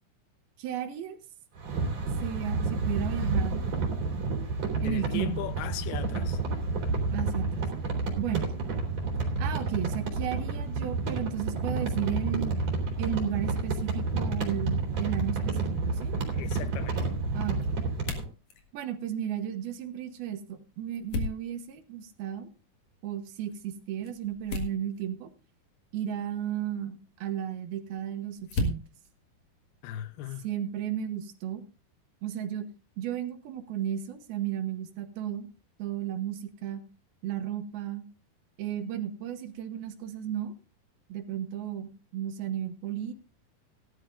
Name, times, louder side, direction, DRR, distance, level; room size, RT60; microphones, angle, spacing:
voice 1, 0.6-1.2 2.2-3.6 4.8-5.5 7.1-7.7 8.2-8.5 9.4-12.6 13.0-16.2 17.3-17.8 18.7-22.5 23.0-25.3 25.9-28.8 30.4-31.6 32.2-35.5 35.8-36.8 37.2-38.0 38.6-40.5 41.1-43.1, right 10 dB, 75° right, 3.0 m, -34 dB
sound 1, 1.6-18.2, right 3 dB, 40° right, 4.0 m, -30 dB
voice 2, 4.8-6.4 16.1-17.1 29.8-30.5, left 12 dB, 80° left, 2.8 m, -38 dB
sound 2, 15.5-30.4, left 2 dB, 55° left, 2.7 m, -41 dB
17.5 x 12.0 x 2.6 m
omnidirectional pair, 4.5 m